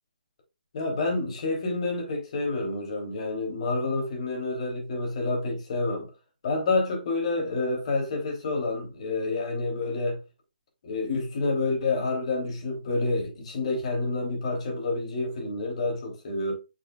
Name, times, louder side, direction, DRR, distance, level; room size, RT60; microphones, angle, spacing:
voice 1, 0.7-6.1 6.4-10.2 10.8-16.5, left 3 dB, 45° left, 3.2 m, -28 dB
8.2 x 6.1 x 2.4 m
hypercardioid pair, 150°, 5 cm